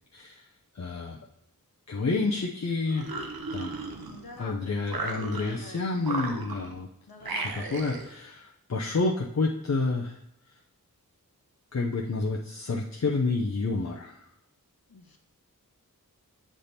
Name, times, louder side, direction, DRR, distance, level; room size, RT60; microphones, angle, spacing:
voice 1, 0.1-0.5 0.7-1.2 1.9-3.8 4.4-6.9 7.3-10.2 11.7-14.3, left 3 dB, 50° left, -1 dB, 0.7 m, -29 dB
sound 1, 2.9-4.4 4.9-5.7 6.0-6.8 7.2-8.1, right 3 dB, 90° right, 0.8 m, -35 dB
voice 2, 4.0-4.6 4.9-5.8 7.1-7.6 14.9-15.2, left 3 dB, 85° left, 4 dB, 1.0 m, -46 dB
7.4 x 3.5 x 4.1 m, 0.79 s
wide cardioid pair, 55°, 35 cm